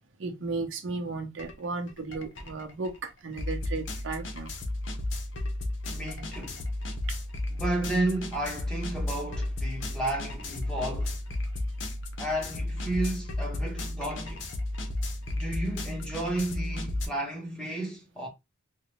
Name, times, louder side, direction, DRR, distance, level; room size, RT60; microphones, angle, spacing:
voice 1, 0.2-4.5 7.1-7.2, right 3 dB, 85° right, 0.7 m, -35 dB
sound 1, 1.4-1.5 1.9-17.1, left 1 dB, 75° left, 0.7 m, -33 dB
voice 2, 5.9-6.6 7.5-11.2 12.2-14.5 15.3-18.3, right 1 dB, 5° left, 1.1 m, -32 dB
3.8 x 2.2 x 2.9 m
head